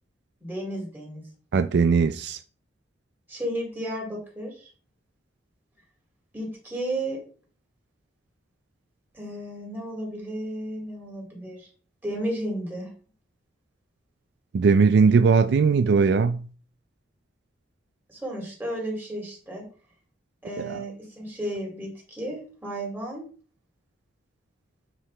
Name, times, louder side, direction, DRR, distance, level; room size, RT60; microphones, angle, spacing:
voice 1, 0.4-1.2 3.3-4.7 6.3-7.2 9.1-11.7 12.0-12.9 18.1-19.6 20.4-23.2, right 1 dB, 10° right, 2.7 m, -33 dB
voice 2, 1.5-2.4 14.5-16.4, right 5 dB, 60° right, 0.3 m, -19 dB
8.7 x 4.8 x 3.2 m
head